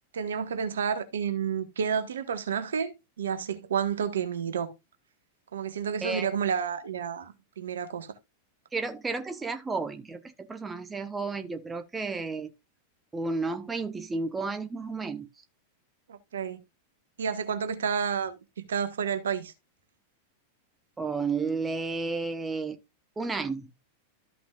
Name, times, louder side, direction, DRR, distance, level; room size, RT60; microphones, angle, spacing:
voice 1, 0.1-2.9 3.2-4.7 5.5-8.1 16.1-16.6 17.2-18.4 18.7-19.5, right 7 dB, 65° right, 1.4 m, -30 dB
voice 2, 6.0-6.3 8.7-12.5 13.1-15.3 21.0-22.8 23.2-23.7, right 4 dB, 15° right, 0.9 m, -32 dB
13.5 x 5.9 x 2.4 m
figure-of-eight pair, 90°, 0 cm